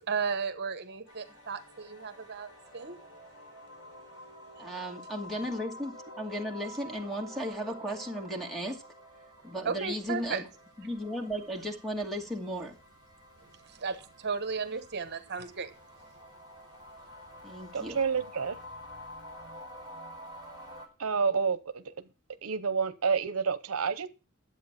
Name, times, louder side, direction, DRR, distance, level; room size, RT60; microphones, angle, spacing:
voice 1, 0.0-3.0 4.6-4.7 9.6-10.4 13.7-15.7, right 5 dB, 50° right, 1.1 m, -35 dB
sound 1, 1.1-20.9, equal, 85° left, 4.4 m, -49 dB
voice 2, 4.6-8.8 9.4-10.4 10.8-12.7 17.4-18.0, equal, ahead, 2.2 m, -35 dB
voice 3, 17.7-18.6 21.0-21.9 22.4-24.1, right 5 dB, 80° right, 0.7 m, -29 dB
11.0 x 8.2 x 5.9 m
head